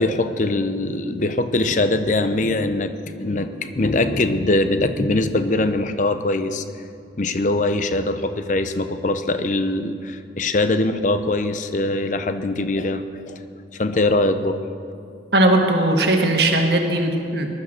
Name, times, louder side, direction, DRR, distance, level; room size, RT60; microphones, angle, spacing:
voice 1, 0.0-6.6 7.2-13.5 13.7-14.6, left 2 dB, 45° left, 10 dB, 0.7 m, -22 dB
voice 2, 15.3-17.5, right 1 dB, 65° right, 3 dB, 1.6 m, -18 dB
19.5 x 11.5 x 6.5 m, 2.6 s
head